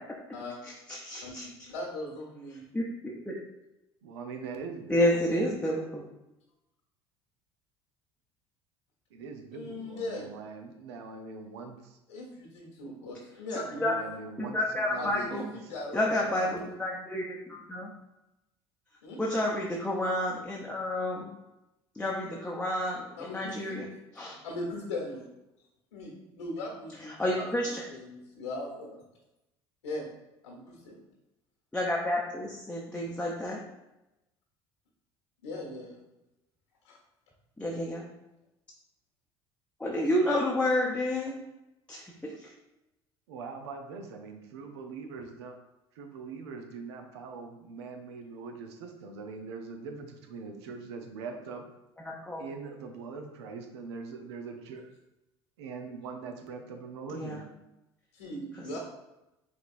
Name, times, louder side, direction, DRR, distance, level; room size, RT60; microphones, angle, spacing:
voice 1, 0.6-1.4 2.7-3.3 4.9-6.0 13.8-13.9 14.4-15.5 15.9-17.9 19.2-21.3 21.9-23.9 24.2-24.4 27.1-27.8 31.7-33.6 37.6-38.1 39.8-41.4 41.9-42.5 52.0-52.4 57.1-57.4 58.6-58.8, left 1 dB, 10° left, -3 dB, 0.7 m, -30 dB
voice 2, 1.2-2.7 9.5-10.3 12.1-13.9 14.9-16.4 19.0-19.2 23.1-23.8 24.4-25.2 25.9-26.1 26.4-29.0 29.8-30.0 30.4-30.9 35.4-36.0 36.8-37.0 58.1-58.8, left 2 dB, 85° left, -2 dB, 1.3 m, -39 dB
voice 3, 4.0-5.5 9.1-12.0 13.7-15.5 43.3-45.6 45.9-51.6 52.4-54.9 55.6-57.4, right 4 dB, 75° right, 4 dB, 0.6 m, -42 dB
4.9 x 3.4 x 2.5 m, 0.94 s
hypercardioid pair, 65°, 14 cm